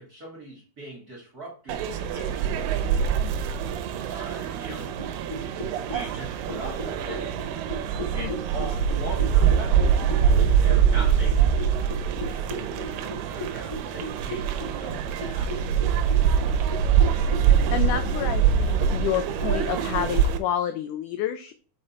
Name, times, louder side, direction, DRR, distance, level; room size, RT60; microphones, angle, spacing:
voice 1, 0.0-3.1 4.0-4.9 5.9-7.3 8.1-15.5, right 1 dB, 40° right, -2 dB, 1.5 m, -41 dB
sound 1, 1.7-20.4, right 7 dB, 75° right, 2.3 m, -24 dB
sound 2, 4.7-19.8, equal, 15° left, 1.4 m, -35 dB
voice 2, 17.7-21.5, left 10 dB, 85° left, 9 dB, 1.8 m, -29 dB
6.7 x 4.7 x 4.2 m, 0.39 s
omnidirectional pair, 4.2 m